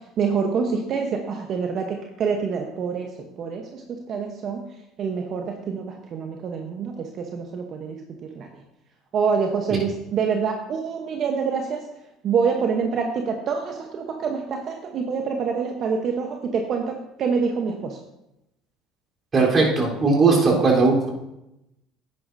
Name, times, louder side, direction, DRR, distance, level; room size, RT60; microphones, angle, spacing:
voice 1, 0.2-3.1 3.4-3.8 4.1-4.7 5.0-8.0 8.4-8.5 9.1-11.8 12.2-18.0, right 5 dB, 50° right, 3 dB, 1.0 m, -26 dB
voice 2, 19.3-21.1, right 3 dB, 35° right, -2 dB, 3.7 m, -18 dB
11.5 x 9.4 x 2.7 m, 0.89 s
supercardioid pair, 85°, 0 cm